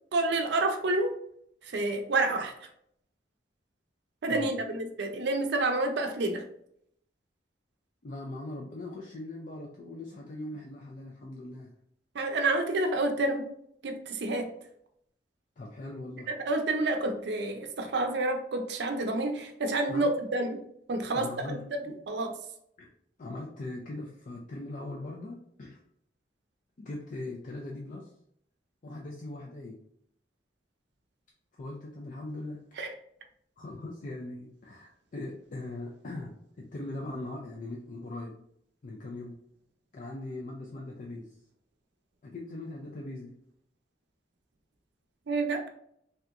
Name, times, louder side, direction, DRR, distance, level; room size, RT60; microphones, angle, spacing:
voice 1, 0.1-1.1 1.6-2.7 4.2-6.4 12.1-13.5 13.8-14.5 16.5-20.6 20.9-21.6 22.1-22.3 32.8-32.9 45.3-45.7, right 2 dB, 65° right, 5 dB, 0.5 m, -29 dB
voice 2, 8.0-11.7 15.6-16.3 19.9-20.1 21.1-22.0 22.8-22.9 23.2-25.8 26.8-28.1 28.8-29.8 31.5-32.6 33.6-38.4 38.8-39.4 39.9-41.4 42.2-43.3, left 2 dB, 45° left, -1 dB, 0.4 m, -40 dB
3.4 x 2.8 x 2.4 m, 0.71 s
head